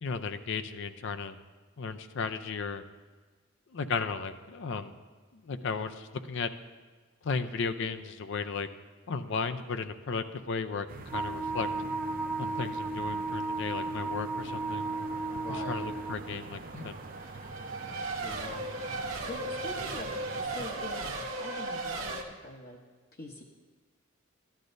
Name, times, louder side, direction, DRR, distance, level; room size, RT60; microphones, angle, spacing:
voice 1, 0.0-1.4 1.8-2.8 3.7-4.9 5.3-6.5 7.2-8.7 9.1-11.7 12.4-14.9 15.7-16.9, left 5 dB, 65° left, 10 dB, 0.5 m, -35 dB
sound 1, 10.9-20.6, right 3 dB, 45° right, 0.5 m, -46 dB
Wind instrument woodwind instrument, 11.1-16.3, right 3 dB, 10° right, 0.9 m, -34 dB
Race car auto racing / Accelerating revving vroom / Mechanisms, 14.4-22.2, right 2 dB, 80° right, 1.0 m, -38 dB
voice 2, 15.3-15.9 18.2-18.7 19.3-22.8 23.1-23.4, left 1 dB, 45° left, -2 dB, 0.9 m, -44 dB
13.5 x 11.5 x 2.6 m, 1.4 s
head